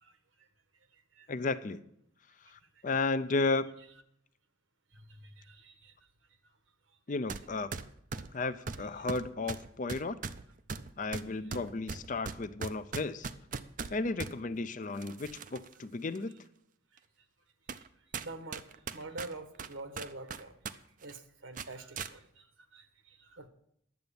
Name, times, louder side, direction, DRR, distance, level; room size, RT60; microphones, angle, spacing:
voice 1, 0.0-0.5 0.9-1.3 2.6-2.8 4.9-5.9 8.1-8.2 9.0-9.1 17.8-17.9 18.2-20.6 21.0-23.5, right 2 dB, 70° right, 8 dB, 1.3 m, -47 dB
voice 2, 1.3-1.8 2.4-3.7 7.1-7.8 8.3-10.2 11.0-13.3 13.9-16.3, left 3 dB, 40° left, 13 dB, 0.5 m, -33 dB
sound 1, 7.3-7.4 7.7-14.3 15.0-15.7 16.2-16.3 17.0-17.1 17.7-17.9 18.1-20.8 21.0-21.2 21.6-22.1, right 5 dB, 40° right, 0.5 m, -40 dB
10.5 x 8.0 x 6.9 m, 0.71 s
head